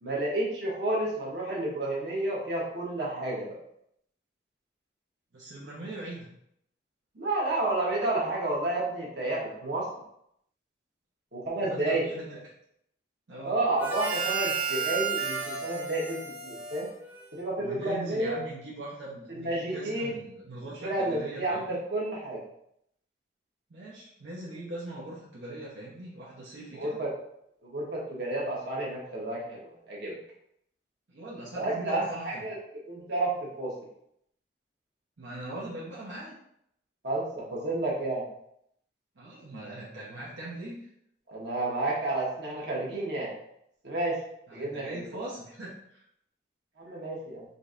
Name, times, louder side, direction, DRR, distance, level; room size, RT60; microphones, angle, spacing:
voice 1, 0.0-3.6 7.1-9.9 11.3-12.1 13.4-16.9 17.3-18.4 19.3-20.1 20.8-22.4 26.7-27.1 27.6-30.2 31.5-33.7 37.0-38.2 41.3-43.3 43.8-44.2 44.5-45.0 46.8-47.4, right 2 dB, 65° right, -4 dB, 1.2 m, -31 dB
voice 2, 5.3-6.3 11.6-12.4 13.3-13.5 17.6-21.8 23.7-27.0 31.1-32.5 35.2-36.4 39.2-40.9 44.5-46.0, right 1 dB, 85° right, -6 dB, 0.8 m, -41 dB
Harmonica, 13.8-17.6, right 6 dB, 10° right, 0.5 m, -32 dB
5.0 x 2.7 x 2.5 m, 0.74 s
head